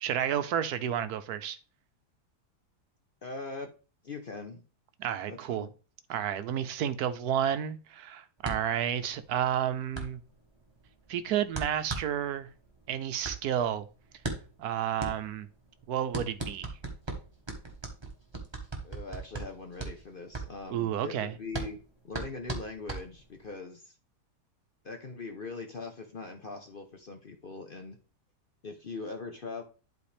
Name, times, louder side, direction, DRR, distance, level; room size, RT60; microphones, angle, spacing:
voice 1, 0.0-1.6 5.0-5.7 6.1-10.2 11.1-12.5 12.9-13.8 14.6-15.5 15.9-16.7 20.7-21.3, right 9 dB, 75° right, 1.1 m, -31 dB
voice 2, 3.2-3.7 4.0-4.6 5.3-5.7 18.8-21.8 22.0-23.9 24.8-28.0 28.6-29.6, left 3 dB, 45° left, 0.7 m, -41 dB
sound 1, 8.4-23.5, right 3 dB, 20° right, 1.2 m, -39 dB
11.0 x 4.3 x 3.3 m
omnidirectional pair, 1.8 m